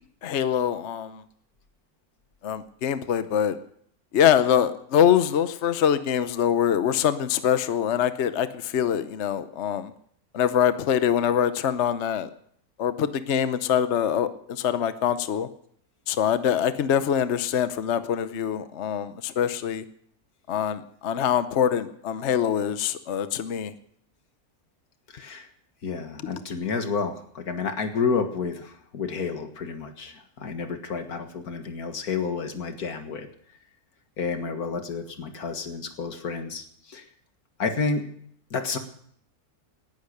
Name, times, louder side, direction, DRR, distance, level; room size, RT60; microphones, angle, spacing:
voice 1, 0.2-1.2 2.4-3.6 4.1-9.9 10.3-12.3 12.8-15.5 16.1-19.8 20.5-23.7, left 9 dB, 55° left, 12 dB, 1.0 m, -24 dB
voice 2, 25.1-25.5 25.8-33.3 34.2-37.0 37.6-38.1 38.5-38.8, left 5 dB, 85° left, 7 dB, 2.1 m, -30 dB
19.0 x 10.5 x 6.6 m, 0.65 s
omnidirectional pair, 1.6 m